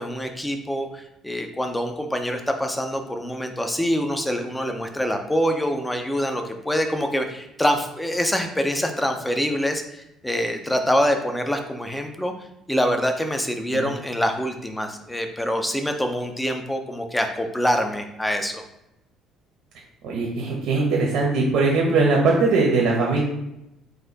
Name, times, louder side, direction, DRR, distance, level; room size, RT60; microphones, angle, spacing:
voice 1, 0.0-12.3 12.7-18.6, equal, 5° left, 5 dB, 0.5 m, -25 dB
voice 2, 20.0-23.2, right 3 dB, 75° right, -2 dB, 0.8 m, -20 dB
4.2 x 2.6 x 3.9 m, 0.88 s
cardioid pair, 130°, 0 cm